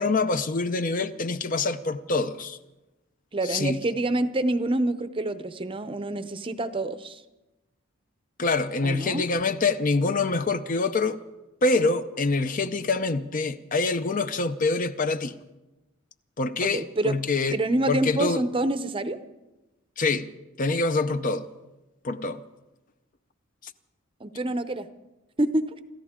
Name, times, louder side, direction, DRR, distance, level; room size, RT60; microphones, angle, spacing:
voice 1, 0.0-2.6 3.5-3.8 8.4-11.2 11.6-15.3 16.4-17.6 17.9-18.4 20.0-20.3 20.6-21.5 22.0-22.4, left 3 dB, 40° left, 0.6 m, -25 dB
voice 2, 3.3-7.2 8.8-9.2 16.6-17.1 17.5-19.2 24.2-24.9 25.4-25.7, right 2 dB, 25° right, 0.6 m, -27 dB
27.5 x 14.0 x 3.7 m
head